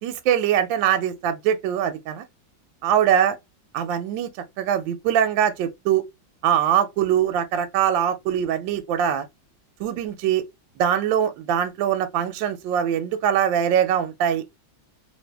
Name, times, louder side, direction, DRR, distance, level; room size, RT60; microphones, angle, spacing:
voice 1, 0.0-2.2 2.8-3.4 3.7-4.3 4.6-6.0 6.4-9.2 9.8-10.4 10.8-14.4, right 9 dB, 75° right, 1.2 m, -22 dB
2.9 x 2.6 x 3.3 m
omnidirectional pair, 2.2 m